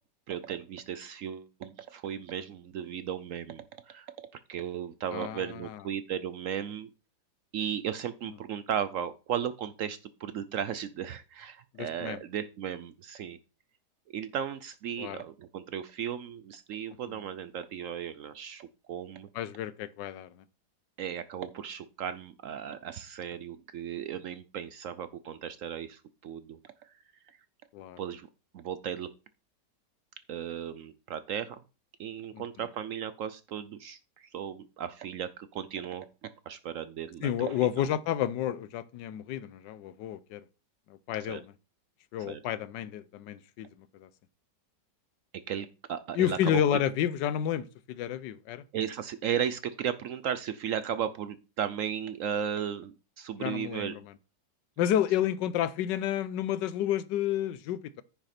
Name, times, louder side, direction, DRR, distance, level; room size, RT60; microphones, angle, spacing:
voice 1, 0.3-4.1 4.5-6.9 7.5-13.4 14.1-19.3 21.0-26.9 28.0-28.3 28.5-29.1 30.3-31.6 32.0-37.9 41.3-41.4 42.3-42.4 45.5-46.8 48.7-54.0, right 9 dB, 80° right, 0.7 m, -36 dB
voice 2, 5.1-5.8 11.7-12.2 15.0-15.2 19.3-20.3 27.7-28.0 32.3-32.4 37.2-40.4 41.1-41.5 42.1-43.7 43.9-44.1 46.1-48.6 53.4-53.9 54.8-58.0, left 11 dB, 80° left, 1.3 m, -30 dB
9.9 x 5.9 x 4.3 m
omnidirectional pair, 1.9 m